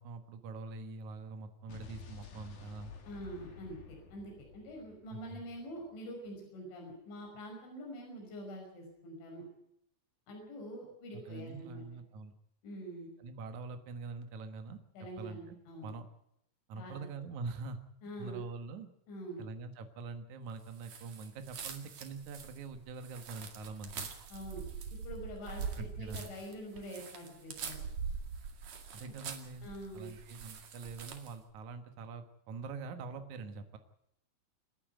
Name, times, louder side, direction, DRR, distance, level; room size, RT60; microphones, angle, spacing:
voice 1, 0.0-2.9 5.1-5.4 11.1-12.3 13.2-14.8 15.2-15.6 15.8-16.1 16.7-17.8 18.2-18.9 19.4-24.1 25.7-26.3 28.9-29.7 29.9-33.8, right 4 dB, 90° right, 7 dB, 1.6 m, -44 dB
Explosion, 1.7-5.8, left 5 dB, 45° left, 3.3 m, -52 dB
voice 2, 3.0-9.5 10.3-11.8 12.6-13.1 14.9-15.9 16.8-17.1 18.0-18.4 19.1-19.4 24.3-27.8 29.0-29.1 29.6-30.1, right 1 dB, 65° left, 0 dB, 7.9 m, -45 dB
sound 1, 20.8-31.4, right 6 dB, 50° right, 2.3 m, -44 dB
28.0 x 10.0 x 9.3 m, 0.77 s
omnidirectional pair, 5.8 m